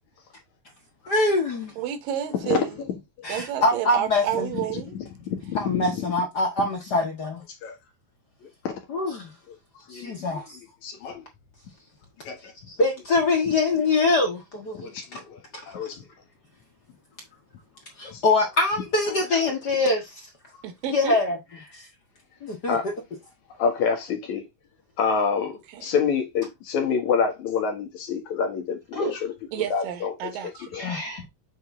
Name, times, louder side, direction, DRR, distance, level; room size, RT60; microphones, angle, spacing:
voice 1, 1.1-1.7 3.2-4.5 5.5-7.4 8.9-9.3 9.9-10.4 12.7-15.2 18.0-20.1 20.9-21.4 22.4-22.8 28.9-29.2 30.7-31.3, left 2 dB, 45° left, 1.5 m, -24 dB
voice 2, 1.8-2.8 3.3-5.0 20.6-21.2 25.7-25.9 29.5-30.7, right 10 dB, 90° right, 2.8 m, -30 dB
voice 3, 5.3-5.8 7.6-7.7 8.6-8.8 9.9-10.4 10.8-11.2 12.3-12.4 14.8-15.3 15.7-16.0 18.0-18.2 22.7-22.9 23.6-24.4 25.0-29.3 29.7-30.1 30.7-30.8, left 6 dB, 65° left, 2.7 m, -27 dB
7.9 x 3.9 x 3.7 m
omnidirectional pair, 3.8 m